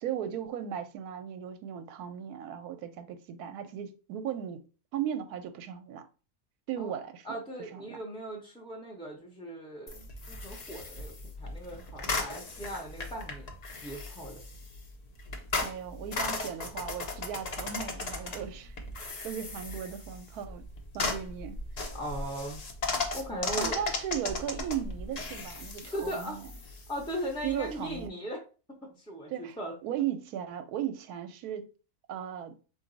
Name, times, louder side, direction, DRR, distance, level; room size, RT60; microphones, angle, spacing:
voice 1, 0.0-4.6 4.9-6.0 6.7-7.4 7.7-8.0 15.6-20.6 20.9-21.6 23.6-26.5 27.4-28.1 29.3-29.6 29.8-31.7 32.1-32.5, right 9 dB, 85° right, 1.1 m, -36 dB
voice 2, 7.2-14.4 21.9-22.6 23.1-23.8 25.9-26.4 26.9-28.4 28.8-29.7, right 1 dB, 5° left, 0.5 m, -38 dB
sound 1, 9.9-28.1, left 3 dB, 60° left, 0.4 m, -37 dB
3.9 x 2.5 x 3.8 m
omnidirectional pair, 1.6 m